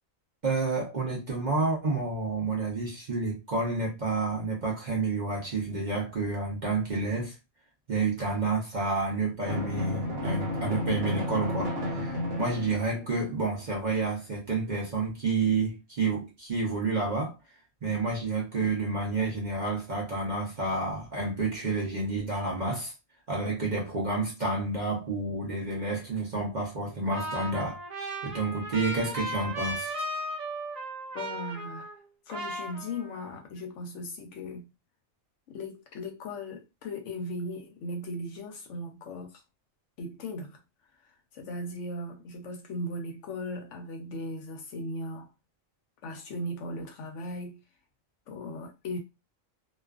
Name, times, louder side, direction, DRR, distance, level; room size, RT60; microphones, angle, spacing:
voice 1, 0.4-7.4 7.9-17.4 17.8-22.9 23.3-27.8 28.2-29.9, right 3 dB, 45° right, 0.7 m, -30 dB
Drum, 9.4-13.2, left 1 dB, 65° right, 1.0 m, -32 dB
Trumpet, 27.1-32.1 32.3-33.3, right 1 dB, 80° right, 0.3 m, -36 dB
voice 2, 31.1-31.9 32.3-34.7 35.5-39.4 40.0-40.6 41.0-45.3 46.0-47.6 48.3-49.0, left 1 dB, 70° left, 0.9 m, -38 dB
2.4 x 2.3 x 2.3 m
omnidirectional pair, 1.4 m